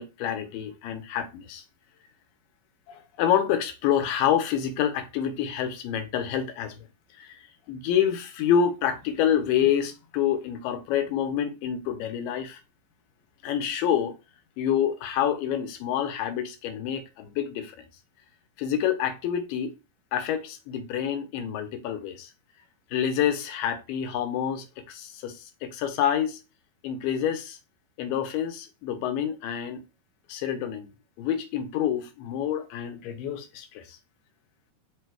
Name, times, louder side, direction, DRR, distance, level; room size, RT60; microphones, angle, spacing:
voice 1, 0.0-1.6 2.9-6.9 7.2-12.6 13.4-14.1 14.6-17.9 18.6-19.7 20.1-22.3 22.9-26.4 26.8-27.6 28.0-29.8 30.3-30.9 31.2-34.0, left 9 dB, 85° left, 2.3 m, -27 dB
5.3 x 2.1 x 4.4 m
omnidirectional pair, 4.0 m